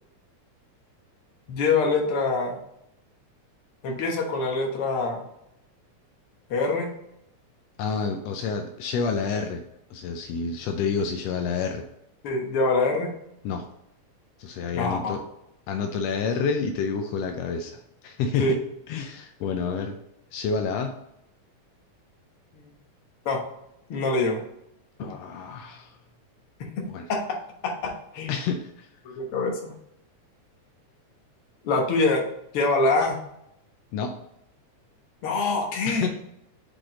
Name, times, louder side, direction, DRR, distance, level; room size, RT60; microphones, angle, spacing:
voice 1, 1.5-2.6 3.8-5.2 6.5-6.9 12.2-13.1 14.7-15.2 18.4-18.5 22.5-22.7 23.3-23.4 23.9-24.4 26.6-26.8 27.1-27.4 27.6-28.3 29.1-29.7 31.6-32.2 32.5-33.2 35.2-36.1, left 3 dB, 55° left, 1 dB, 1.8 m, -25 dB
voice 2, 7.8-9.6 9.9-11.8 13.4-13.6 14.4-15.2 15.7-18.6 18.9-20.0 20.3-20.9 25.0-26.0 26.8-27.0 28.3-28.9 33.9-34.1 35.9-36.1, left 5 dB, 80° left, 4 dB, 1.5 m, -29 dB
6.0 x 5.0 x 3.7 m, 0.80 s
omnidirectional pair, 3.5 m